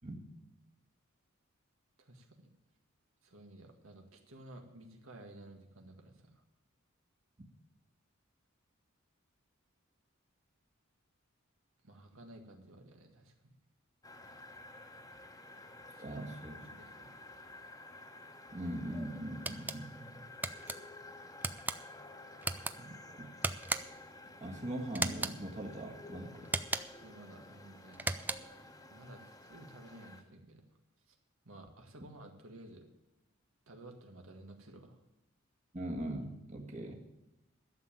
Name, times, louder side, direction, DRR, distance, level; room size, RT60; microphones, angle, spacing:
voice 1, 2.0-2.5 3.2-6.4 11.8-13.5 15.9-16.2 16.5-17.3 27.0-28.0 28.9-30.6 31.1-31.2 31.4-32.9 33.7-35.0, right 1 dB, 80° right, 3 dB, 1.8 m, -54 dB
sound 1, 14.0-30.2, left 2 dB, 15° left, 1.2 m, -52 dB
voice 2, 16.0-16.6 18.5-20.2 22.8-23.3 24.4-26.5 35.7-36.9, right 1 dB, 35° right, 1 dB, 1.7 m, -41 dB
sound 2, 19.4-19.8 20.4-20.8 21.4-21.8 22.4-22.7 23.4-24.0 24.9-25.4 26.4-27.0 27.9-28.6, right 2 dB, 10° right, 0.4 m, -36 dB
12.0 x 7.3 x 8.9 m, 0.93 s
head